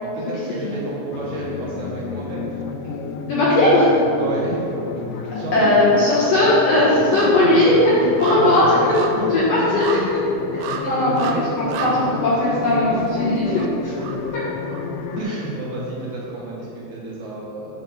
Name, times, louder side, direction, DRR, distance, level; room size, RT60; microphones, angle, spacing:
voice 1, 0.0-2.4 2.7-3.1 4.2-4.8 5.3-5.8 7.2-9.7 10.8-11.4 12.1-12.5 15.2-17.8, right 2 dB, 60° right, -6 dB, 2.6 m, -31 dB
sound 1, 1.1-15.2, left 5 dB, 80° left, 2.0 m, -30 dB
voice 2, 3.3-3.9 5.5-7.9 8.2-8.9 9.3-10.2 10.5-12.0 12.2-13.9, left 1 dB, 60° left, -8 dB, 1.8 m, -18 dB
sound 2, 4.3-4.9 5.2-15.2 15.5-15.6, right 5 dB, 80° right, 2.2 m, -34 dB
9.0 x 4.2 x 6.1 m, 3.0 s
omnidirectional pair, 4.2 m